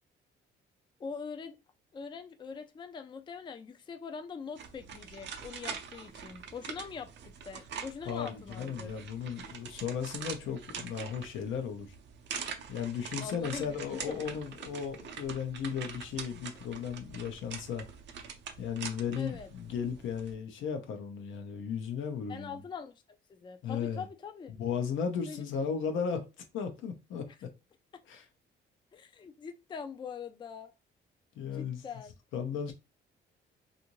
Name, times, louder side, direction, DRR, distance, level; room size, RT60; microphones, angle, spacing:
voice 1, 1.0-1.6 1.9-8.9 13.2-14.2 19.2-19.5 22.3-22.9 23.3-24.5 25.3-25.8 27.9-28.0 28.9-30.7 31.4-32.2, left 6 dB, 25° left, 0.4 m, -43 dB
sound 1, 4.6-20.3, right 7 dB, 65° right, 0.5 m, -44 dB
voice 2, 8.1-11.9 12.7-17.9 18.6-22.6 23.6-24.0 24.5-26.3 26.5-27.5 28.1-28.2 31.4-31.8 32.3-32.7, left 7 dB, 80° left, 0.7 m, -35 dB
2.6 x 2.5 x 2.9 m
cardioid pair, 90°, 20 cm